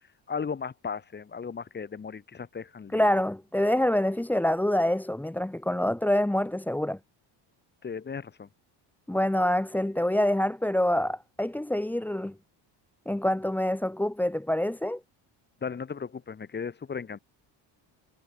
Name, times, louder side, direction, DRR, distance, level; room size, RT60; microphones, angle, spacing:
voice 1, 0.3-3.1 7.8-8.5 15.6-17.2, left 6 dB, 20° left, 6.5 m, -36 dB
voice 2, 2.9-7.0 9.1-12.3 13.1-15.0, left 1 dB, 5° left, 2.0 m, -26 dB
cardioid pair, 175°, 48 cm